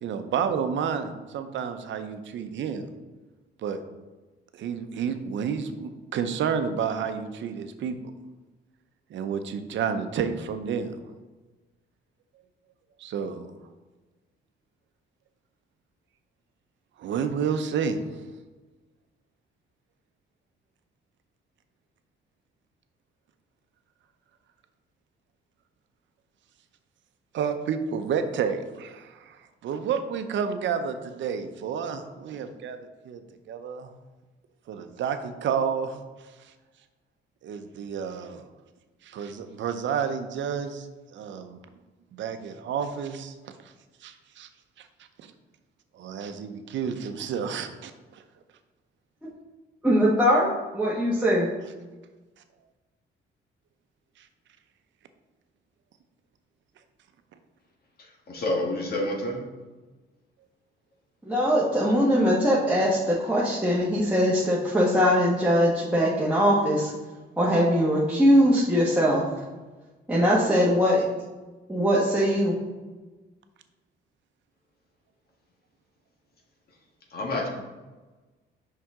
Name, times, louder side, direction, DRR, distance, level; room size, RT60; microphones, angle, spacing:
voice 1, 0.0-2.9 3.6-3.8 4.5-8.0 9.1-10.9 13.0-13.5 17.0-18.0 27.3-32.8 33.0-33.2 33.5-33.9 34.7-36.0 37.4-38.4 39.0-41.6 42.1-43.5 44.0-44.5 44.8-44.9 45.2-45.3 45.9-48.2 54.2-54.3, right 7 dB, 70° right, 9 dB, 0.7 m, -30 dB
voice 2, 49.8-51.5 61.3-66.9 67.4-69.2 70.1-71.0 71.7-72.5, equal, 5° right, -8 dB, 1.3 m, -21 dB
voice 3, 58.3-59.4 77.1-77.5, left 1 dB, 50° left, 0 dB, 1.6 m, -28 dB
5.9 x 5.6 x 3.6 m, 1.2 s
cardioid pair, 90°, 20 cm